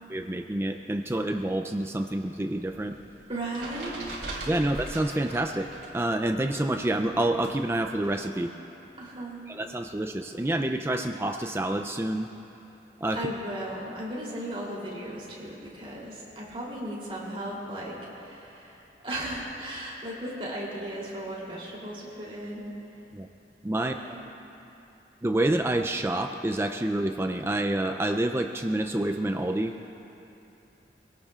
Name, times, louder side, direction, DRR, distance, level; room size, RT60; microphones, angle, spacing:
voice 1, 0.1-3.0 4.4-5.7 5.9-8.5 9.5-12.3 13.0-13.3 23.1-23.3 23.6-23.9 25.2-29.7, right 1 dB, 15° right, 5 dB, 0.4 m, -28 dB
sound 1, 2.7-6.0 6.3-8.2, right 1 dB, 70° right, 3.3 m, -40 dB
voice 2, 3.3-4.0 4.3-4.5 9.0-9.4 13.1-22.7 23.8-24.2, right 1 dB, 35° right, -5 dB, 3.2 m, -36 dB
25.0 x 17.5 x 2.5 m, 2.9 s
head